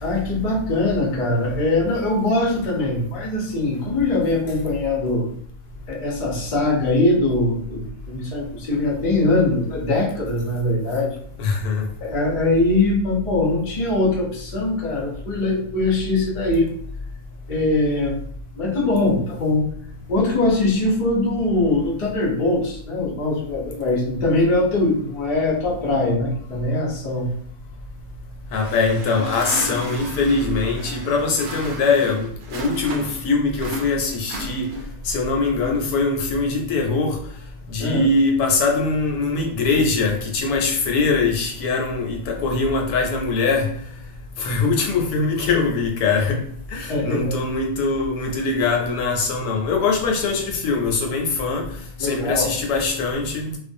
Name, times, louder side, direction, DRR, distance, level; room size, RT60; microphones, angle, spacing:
voice 1, 0.0-5.3 5.9-11.1 12.0-16.7 17.5-18.2 18.6-19.7 20.1-27.3 37.8-38.1 46.9-47.4 52.0-52.5, left 2 dB, 50° left, 0.6 m, -22 dB
voice 2, 11.4-11.9 28.5-34.8 35.0-37.2 37.7-43.7 44.4-46.4 46.7-51.7 52.0-53.6, left 3 dB, 80° left, 1.1 m, -22 dB
sound 1, 28.5-33.2 33.5-35.0, right 1 dB, 65° right, 0.6 m, -34 dB
2.5 x 2.2 x 2.5 m
omnidirectional pair, 1.6 m